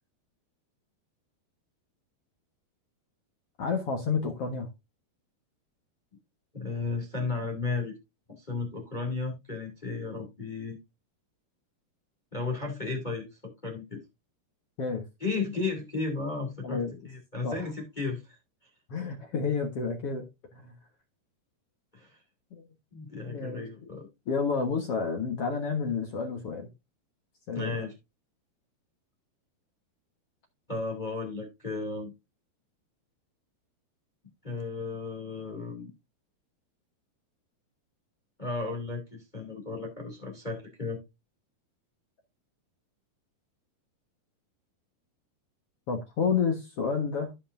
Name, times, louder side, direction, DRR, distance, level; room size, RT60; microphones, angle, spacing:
voice 1, 3.6-4.7 14.8-15.0 16.6-16.9 17.4-17.6 18.9-20.7 22.5-22.6 23.3-23.9 24.3-26.7 27.5-27.8 45.9-47.3, left 5 dB, 65° left, 1.5 m, -30 dB
voice 2, 6.5-8.0 8.3-10.8 12.3-13.3 13.6-14.0 15.2-18.2 21.9-22.2 22.9-24.1 27.5-27.9 30.7-32.1 34.4-35.9 38.4-41.0, left 3 dB, 15° left, 1.9 m, -34 dB
15.0 x 5.6 x 2.6 m
omnidirectional pair, 4.7 m